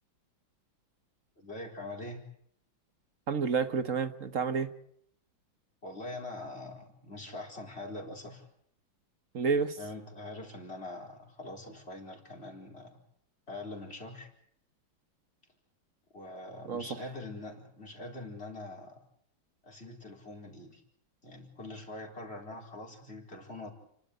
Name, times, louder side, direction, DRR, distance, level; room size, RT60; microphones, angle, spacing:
voice 1, 1.4-2.2 5.8-8.5 9.8-13.0 13.5-14.3 16.1-19.0 19.6-20.8 21.2-23.7, left 2 dB, 30° left, 1 dB, 4.5 m, -43 dB
voice 2, 3.3-4.7 9.3-9.8 16.7-17.0, right 5 dB, 45° right, 10 dB, 1.5 m, -30 dB
29.5 x 12.0 x 9.6 m, 0.69 s
omnidirectional pair, 2.2 m